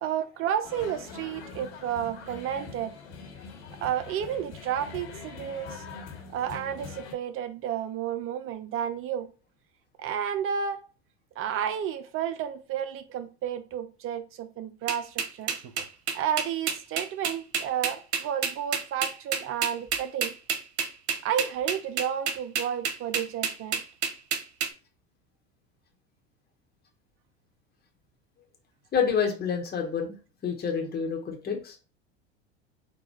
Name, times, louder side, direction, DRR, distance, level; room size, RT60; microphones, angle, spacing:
voice 1, 0.0-2.9 3.8-5.8 6.3-9.3 10.0-10.8 11.4-15.6 16.1-20.3 21.2-23.8, right 9 dB, 40° right, 0.7 m, -31 dB
sound 1, 0.6-7.1, left 5 dB, 70° left, 1.6 m, -43 dB
sound 2, 14.9-24.7, right 6 dB, 80° right, 0.9 m, -28 dB
voice 2, 28.9-30.1 30.4-31.8, left 6 dB, 30° left, 1.3 m, -28 dB
4.6 x 2.5 x 4.4 m
hypercardioid pair, 90°, 33 cm